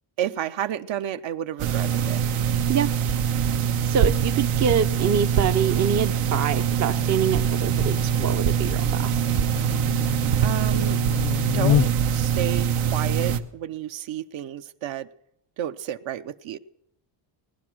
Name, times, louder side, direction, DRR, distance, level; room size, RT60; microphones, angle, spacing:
voice 1, 0.2-2.2 10.4-11.0 11.5-15.1 15.6-16.6, right 11 dB, 65° right, 0.9 m, -31 dB
sound 1, 1.6-13.4, right 8 dB, 80° right, 1.2 m, -23 dB
voice 2, 3.8-9.2, right 7 dB, 35° right, 0.6 m, -25 dB
Buzz, 4.4-12.2, left 11 dB, 60° left, 0.5 m, -31 dB
19.0 x 11.5 x 6.1 m
cardioid pair, 120°, 49 cm